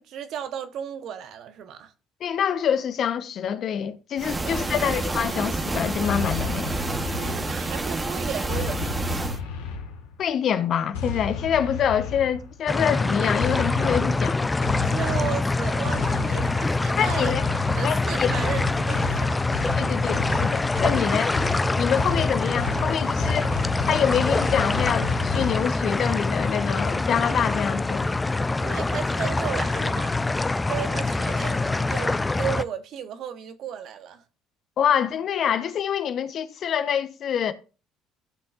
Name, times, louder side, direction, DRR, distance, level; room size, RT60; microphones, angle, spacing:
voice 1, 0.0-1.9 4.4-4.8 7.1-9.0 14.8-17.4 17.7-19.4 21.0-21.2 28.6-30.2 30.7-34.2, right 9 dB, 60° right, 1.0 m, -34 dB
voice 2, 2.2-6.8 10.2-14.5 17.0-17.4 17.8-18.3 19.8-21.3 21.8-23.5 23.9-28.1 34.8-37.5, left 8 dB, 55° left, 0.9 m, -26 dB
sound 1, 4.2-9.4, right 2 dB, 25° right, 1.1 m, -29 dB
sound 2, 6.0-7.8 8.5-10.2 10.9-12.6 13.4-25.7, left 5 dB, 85° left, 1.6 m, -33 dB
sound 3, 12.7-32.6, left 3 dB, 20° left, 0.5 m, -25 dB
15.5 x 6.0 x 2.5 m
hypercardioid pair, 65°, 0 cm